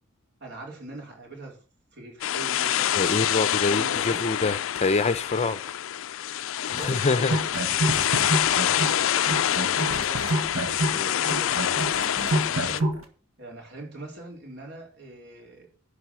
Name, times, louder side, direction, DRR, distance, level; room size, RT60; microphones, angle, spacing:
voice 1, 0.4-1.6 1.9-4.3 6.6-10.4 10.8-12.0 12.4-12.9 13.4-15.7, right 2 dB, 55° right, 4.5 m, -43 dB
sound 1, 2.2-12.8, left 11 dB, 65° left, 0.4 m, -26 dB
voice 2, 3.0-5.6 6.9-7.3 10.9-11.1, left 3 dB, 30° left, 0.6 m, -25 dB
sound 2, 7.2-9.0 9.3-13.0, right 1 dB, 75° right, 1.8 m, -27 dB
11.0 x 5.0 x 7.1 m
head